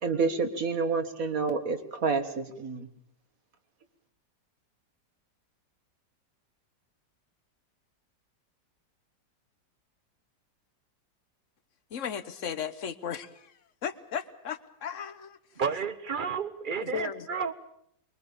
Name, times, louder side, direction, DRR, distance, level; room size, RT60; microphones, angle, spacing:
voice 1, 0.0-2.9, right 4 dB, 50° right, 2.1 m, -29 dB
voice 2, 11.9-13.5 13.8-15.4 16.8-17.3, left 8 dB, 50° left, 1.3 m, -36 dB
voice 3, 15.6-17.5, right 6 dB, 35° right, 0.9 m, -31 dB
24.5 x 22.0 x 7.1 m
omnidirectional pair, 1.9 m